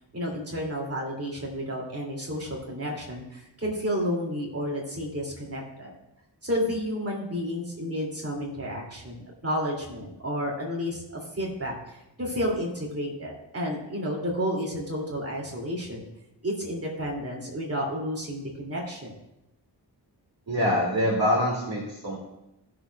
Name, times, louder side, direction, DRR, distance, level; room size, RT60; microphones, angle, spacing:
voice 1, 0.1-5.9 6.4-11.8 12.2-16.0 16.4-19.1, equal, 35° right, -2 dB, 2.4 m, -31 dB
voice 2, 20.5-22.2, equal, 60° right, -5 dB, 2.3 m, -25 dB
16.0 x 6.4 x 2.3 m, 0.87 s
wide cardioid pair, 105°, 42 cm